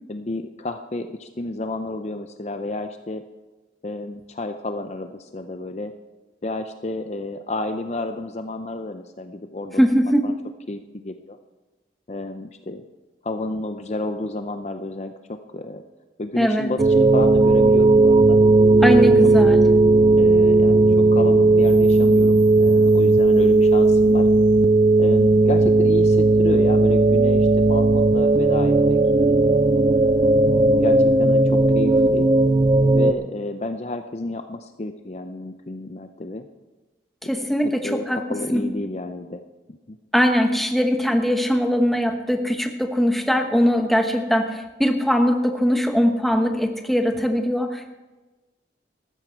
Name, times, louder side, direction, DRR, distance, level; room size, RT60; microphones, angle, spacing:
voice 1, 0.1-3.2 3.8-5.9 6.4-9.8 10.2-10.3 10.7-11.4 12.1-12.8 13.2-15.8 16.2-18.4 19.0-19.1 20.2-24.3 25.0-29.0 29.3-29.6 30.6-32.3 32.9-36.5 37.3-39.4 39.7-40.0, left 2 dB, 35° left, 8 dB, 0.6 m, -31 dB
voice 2, 9.8-10.3 16.4-16.7 18.8-19.6 37.2-38.2 38.5-38.6 40.1-47.9, equal, ahead, 4 dB, 1.0 m, -21 dB
sound 1, 16.8-33.1, right 2 dB, 25° right, 0.4 m, -16 dB
14.0 x 13.0 x 4.6 m, 1.2 s
head